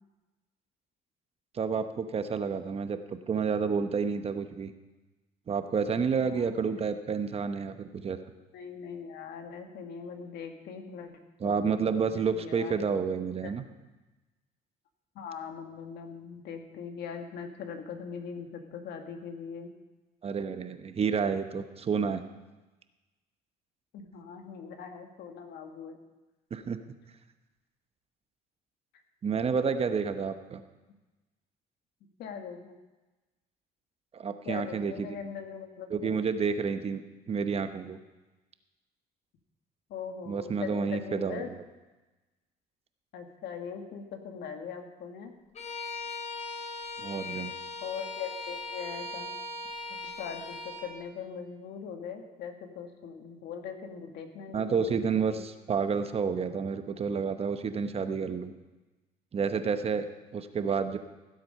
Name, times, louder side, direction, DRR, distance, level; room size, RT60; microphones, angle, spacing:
voice 1, 1.5-4.7 5.5-8.2 11.4-13.6 20.2-22.2 26.5-26.9 29.2-30.6 34.1-35.1 35.9-37.0 37.3-38.0 40.3-41.5 47.0-47.5 54.5-58.5 59.3-60.0 60.3-61.0, right 5 dB, 35° right, 9 dB, 0.9 m, -30 dB
voice 2, 6.2-6.5 8.5-12.8 13.4-13.5 15.1-19.7 23.9-26.0 32.2-32.8 34.4-36.1 39.9-41.5 43.1-45.3 47.8-49.3 49.9-55.4, left 6 dB, 75° left, 5 dB, 1.7 m, -41 dB
Bowed string instrument, 45.5-50.9, left 3 dB, 45° left, 3.5 m, -39 dB
16.5 x 7.8 x 5.5 m, 1.1 s
cardioid pair, 110°, 17 cm